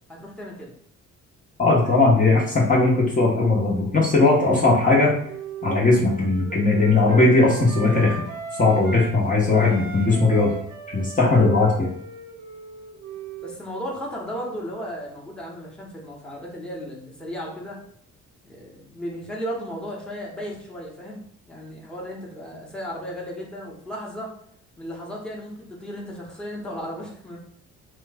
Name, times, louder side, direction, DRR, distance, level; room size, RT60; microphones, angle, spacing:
voice 1, 0.1-0.7 13.4-17.8 18.5-21.2 21.5-24.3 24.8-27.4, equal, 5° left, -4 dB, 1.0 m, -35 dB
voice 2, 1.6-5.1 5.6-8.1 8.6-10.6 10.9-11.9, left 3 dB, 25° left, -4 dB, 0.9 m, -18 dB
Wind instrument woodwind instrument, 4.7-9.2 9.5-14.0, right 4 dB, 80° right, 0.7 m, -37 dB
3.0 x 2.2 x 3.4 m, 0.67 s
cardioid pair, 90°, 30 cm